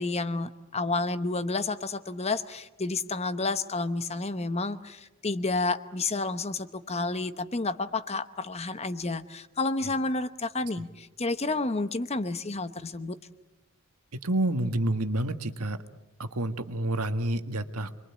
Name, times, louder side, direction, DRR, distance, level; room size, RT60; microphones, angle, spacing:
voice 1, 0.0-13.2, left 3 dB, 30° left, 12 dB, 0.9 m, -30 dB
voice 2, 14.2-15.8 16.2-17.9, right 1 dB, 85° right, 8 dB, 1.7 m, -29 dB
28.0 x 22.5 x 8.6 m, 1.0 s
head